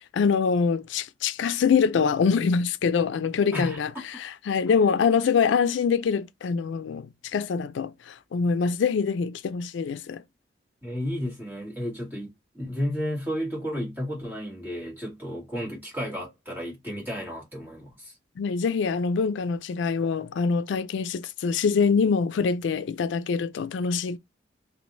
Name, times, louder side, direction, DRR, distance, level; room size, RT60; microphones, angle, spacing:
voice 1, 0.1-10.2 18.4-24.2, left 5 dB, 80° left, 0.3 m, -24 dB
voice 2, 3.5-4.0 10.8-18.1, equal, 10° right, 1.8 m, -33 dB
3.6 x 2.7 x 2.5 m
head